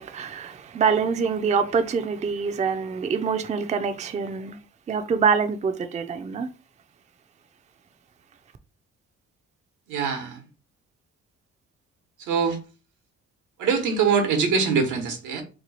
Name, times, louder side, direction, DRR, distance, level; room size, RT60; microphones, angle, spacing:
voice 1, 0.0-4.6 4.9-6.5, right 6 dB, 25° right, 0.4 m, -25 dB
voice 2, 9.9-10.5 12.2-12.6 13.6-15.4, right 5 dB, 85° right, 1.0 m, -23 dB
2.9 x 2.3 x 4.0 m
cardioid pair, 90°, 30 cm